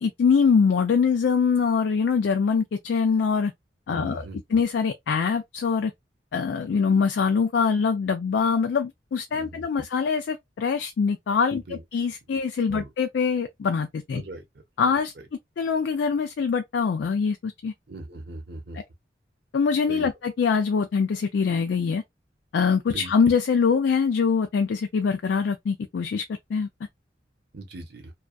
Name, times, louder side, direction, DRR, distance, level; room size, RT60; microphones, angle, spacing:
voice 1, 0.0-3.5 3.9-5.9 6.3-14.2 14.8-15.1 15.6-17.7 18.7-18.8 19.5-22.0 22.5-26.2 26.5-26.7, left 5 dB, 70° left, 0.3 m, -23 dB
voice 2, 3.9-4.4 9.3-9.6 11.5-11.8 12.7-12.9 14.1-14.4 17.9-18.8 19.9-20.1 22.9-23.1 27.5-28.1, right 2 dB, 60° right, 0.7 m, -39 dB
2.4 x 2.2 x 2.4 m
head